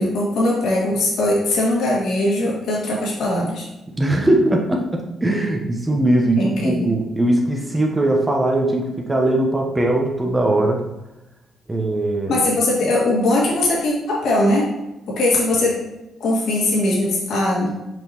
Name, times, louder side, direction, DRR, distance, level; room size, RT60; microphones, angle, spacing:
voice 1, 0.0-3.7 6.4-6.9 12.3-14.7 15.1-15.8 16.2-17.7, left 1 dB, 75° left, -4 dB, 2.2 m, -20 dB
voice 2, 3.9-10.8 11.7-12.4, right 1 dB, 15° right, 1 dB, 1.0 m, -20 dB
6.2 x 5.1 x 3.0 m, 0.97 s
cardioid pair, 90°, 0 cm